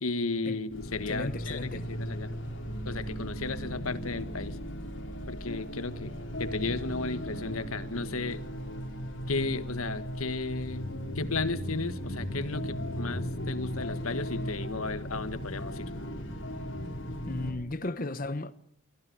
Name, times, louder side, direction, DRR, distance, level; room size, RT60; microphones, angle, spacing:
voice 1, 0.0-2.3 2.8-4.6 5.3-6.1 6.4-8.4 9.3-10.9 11.1-15.9, left 3 dB, 90° left, 1.5 m, -34 dB
sound 1, 0.7-17.5, equal, 60° left, 5.3 m, -37 dB
voice 2, 1.0-1.9 17.3-18.5, left 2 dB, 40° left, 0.9 m, -35 dB
24.5 x 15.5 x 9.4 m
head